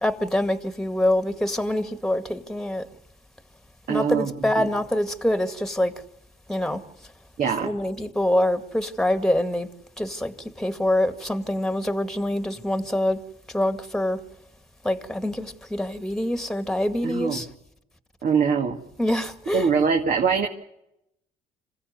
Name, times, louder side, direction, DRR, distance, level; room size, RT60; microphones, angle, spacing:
voice 1, 0.0-2.9 3.9-5.9 6.5-6.8 7.6-9.7 10.0-13.2 13.5-14.2 14.8-17.5 19.0-19.7, left 1 dB, 5° left, 2.0 m, -25 dB
voice 2, 3.9-4.7 7.4-7.7 17.0-17.4 18.2-18.8 19.5-20.5, right 6 dB, 55° right, 2.2 m, -23 dB
27.0 x 16.0 x 9.5 m
cardioid pair, 110°, 17 cm